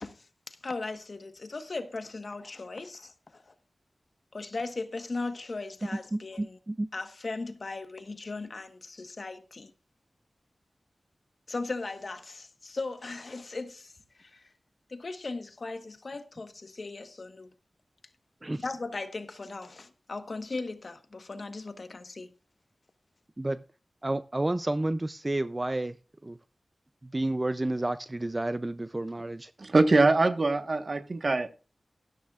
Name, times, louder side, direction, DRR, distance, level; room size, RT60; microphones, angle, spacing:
voice 1, 0.0-3.5 4.3-6.6 6.9-9.7 11.5-14.5 14.9-17.5 18.6-22.3, left 3 dB, 60° left, 1.2 m, -38 dB
voice 2, 6.1-6.9 18.4-18.6 23.4-23.6 24.0-26.0 26.2-26.4 27.0-29.5, right 1 dB, 25° right, 0.4 m, -30 dB
voice 3, 29.6-31.5, right 3 dB, 55° right, 1.2 m, -23 dB
13.0 x 13.0 x 2.4 m
wide cardioid pair, 70°, 0 cm